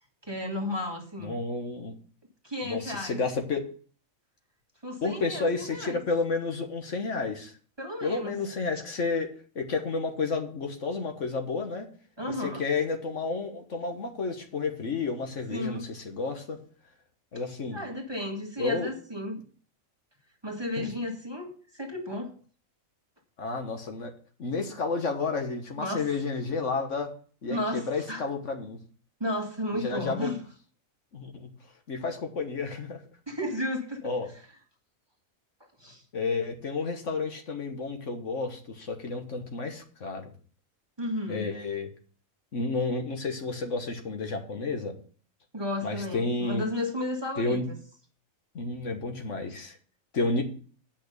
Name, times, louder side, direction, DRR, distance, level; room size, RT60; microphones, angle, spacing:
voice 1, 0.2-1.4 2.4-3.2 4.8-6.0 7.8-8.3 12.2-12.6 15.5-15.9 17.7-19.4 20.4-22.3 25.8-26.1 27.5-28.3 29.2-30.4 33.3-34.5 35.6-36.0 41.0-41.4 45.5-47.8, left 1 dB, 20° right, 1 dB, 1.7 m, -33 dB
voice 2, 1.2-1.9 2.6-3.6 5.0-7.5 8.0-9.3 9.5-11.9 12.6-16.6 17.3-17.8 18.6-18.9 20.8-20.9 23.4-24.1 24.4-27.1 27.4-28.8 29.8-30.3 31.1-31.5 31.9-33.0 34.0-34.3 36.1-40.3 41.3-41.9 42.5-44.9 45.8-46.6 47.4-47.6 48.5-49.8 50.1-50.4, left 3 dB, 65° left, 5 dB, 1.6 m, -31 dB
8.5 x 6.0 x 6.7 m, 0.42 s
omnidirectional pair, 1.4 m